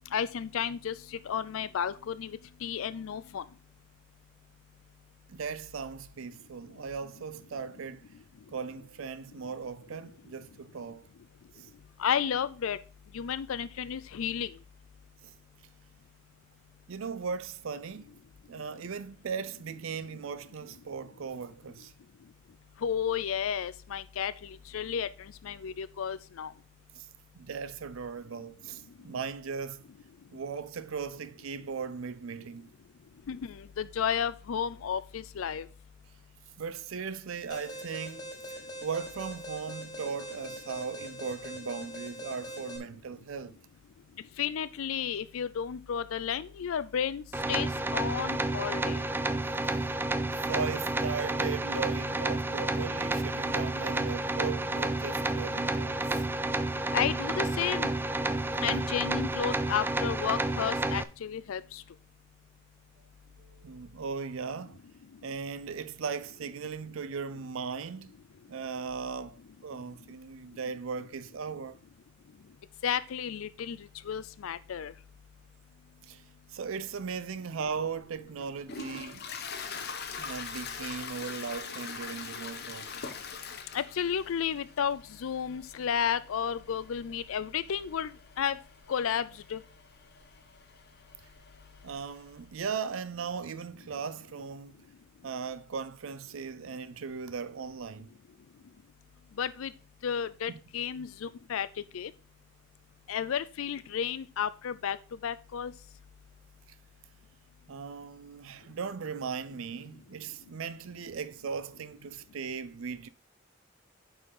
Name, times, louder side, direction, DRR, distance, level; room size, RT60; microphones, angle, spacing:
voice 1, 0.1-2.3 2.6-3.4 12.0-12.8 13.1-14.5 22.8-24.3 24.7-25.1 25.4-26.5 33.3-35.7 44.4-47.2 47.5-49.0 56.9-57.9 58.6-61.8 72.8-73.8 74.1-74.9 83.7-88.1 88.4-88.6 88.9-89.3 89.5-89.6 99.4-99.7 100.0-101.7 101.9-102.1 103.1-105.0 105.2-105.7, left 8 dB, 75° left, 0.4 m, -32 dB
voice 2, 5.3-8.0 8.5-11.1 11.5-11.7 15.2-15.3 16.9-18.2 18.5-21.9 26.9-27.1 27.3-29.8 30.3-32.7 36.6-43.6 49.7-49.8 50.3-56.2 63.4-64.8 65.2-68.1 68.5-71.8 76.1-76.2 76.5-79.3 80.2-82.9 91.8-94.8 95.2-98.1 100.5-100.6 107.7-113.1, right 5 dB, 70° right, 0.5 m, -38 dB
Alarm, 37.5-42.8, equal, 20° left, 1.8 m, -42 dB
sound 1, 47.3-61.0, right 2 dB, 10° right, 0.4 m, -30 dB
Toilet flush, 77.7-92.4, left 5 dB, 50° left, 1.1 m, -44 dB
8.9 x 4.5 x 4.8 m
head